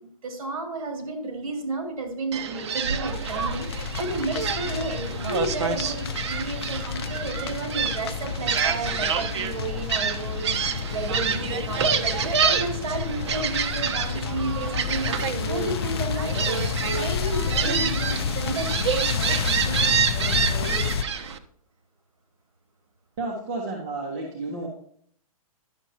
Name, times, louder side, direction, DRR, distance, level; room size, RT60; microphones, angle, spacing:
voice 1, 0.0-21.3, right 2 dB, 65° right, 3 dB, 2.6 m, -33 dB
Gull seagull, 2.3-21.4, right 7 dB, 50° right, 0.7 m, -28 dB
sound 1, 3.0-21.0, left 7 dB, 45° left, 0.4 m, -30 dB
voice 2, 23.2-24.7, right 2 dB, 30° right, -2 dB, 1.3 m, -31 dB
11.0 x 7.1 x 2.9 m, 0.62 s
hypercardioid pair, 170°, 19 cm